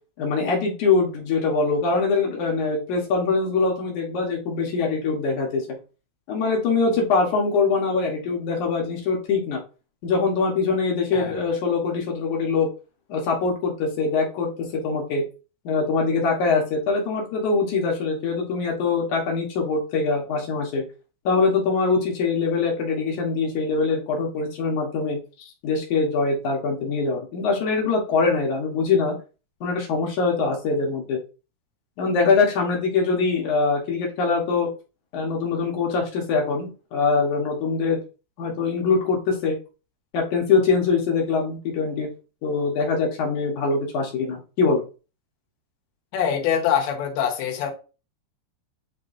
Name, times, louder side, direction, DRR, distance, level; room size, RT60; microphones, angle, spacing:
voice 1, 0.2-5.7 6.3-9.6 10.0-12.7 13.1-15.2 15.7-20.8 21.2-25.2 25.6-29.2 29.6-31.2 32.0-34.7 35.1-38.0 38.4-39.6 40.1-42.1 42.4-44.8, left 4 dB, 60° left, 2.2 m, -23 dB
voice 2, 46.1-47.7, left 8 dB, 85° left, 3.5 m, -24 dB
9.4 x 3.8 x 2.6 m
omnidirectional pair, 5.0 m